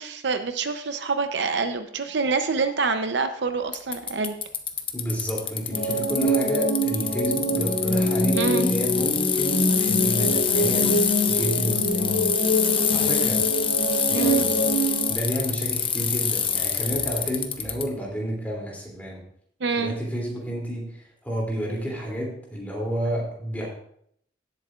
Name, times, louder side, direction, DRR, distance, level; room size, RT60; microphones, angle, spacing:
voice 1, 0.0-4.3 8.4-8.7 14.1-14.5 19.6-19.9, right 4 dB, 60° right, 8 dB, 0.7 m, -26 dB
Bicycle, 3.7-17.8, left 7 dB, 30° left, 0.8 m, -26 dB
voice 2, 4.9-12.3 12.9-13.4 14.1-14.6 15.1-19.2 19.8-23.7, equal, 10° left, -3 dB, 2.8 m, -30 dB
sound 1, 5.7-15.1, equal, 70° left, 2.1 m, -25 dB
17.0 x 8.2 x 2.4 m, 0.67 s
head